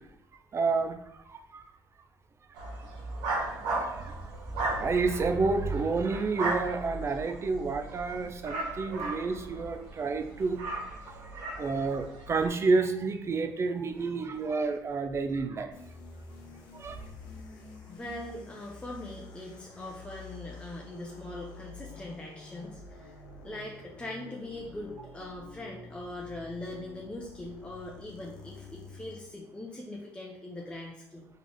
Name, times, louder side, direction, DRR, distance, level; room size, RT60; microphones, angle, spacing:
voice 1, 0.5-1.0 1.3-1.6 3.4-4.2 4.6-10.6 11.6-15.7 16.7-17.0, right 4 dB, 35° right, 7 dB, 0.5 m, -30 dB
sound 1, 2.5-12.5, right 2 dB, 90° right, 0.9 m, -36 dB
sound 2, 15.7-29.4, left 3 dB, 80° left, 1.0 m, -48 dB
voice 2, 17.3-17.6 17.9-31.3, left 1 dB, 15° left, -2 dB, 0.7 m, -42 dB
3.4 x 3.3 x 3.8 m, 0.76 s
supercardioid pair, 80°, 7 cm